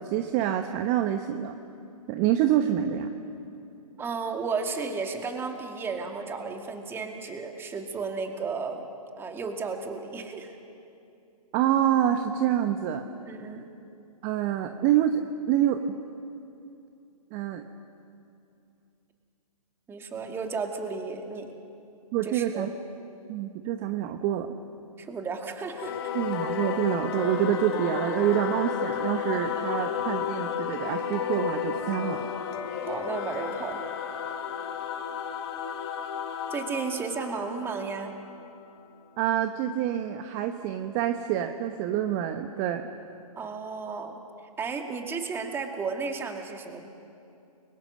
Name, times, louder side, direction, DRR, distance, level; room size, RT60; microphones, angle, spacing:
voice 1, 0.0-1.5 2.1-3.1 11.5-13.0 14.2-15.2 15.5-16.0 17.3-17.6 22.1-22.7 23.3-24.5 26.1-32.2 39.2-42.9, right 11 dB, 25° right, 7 dB, 1.1 m, -26 dB
voice 2, 4.0-8.8 9.2-10.5 13.2-13.7 19.9-21.5 22.2-22.7 25.0-26.0 32.8-33.7 36.5-38.1 43.4-44.2 44.6-46.8, right 4 dB, 10° right, 4 dB, 2.1 m, -33 dB
Singing / Musical instrument, 25.7-38.6, left 8 dB, 45° left, 2.3 m, -32 dB
30.0 x 23.0 x 6.5 m, 2.6 s
hypercardioid pair, 135°, 19 cm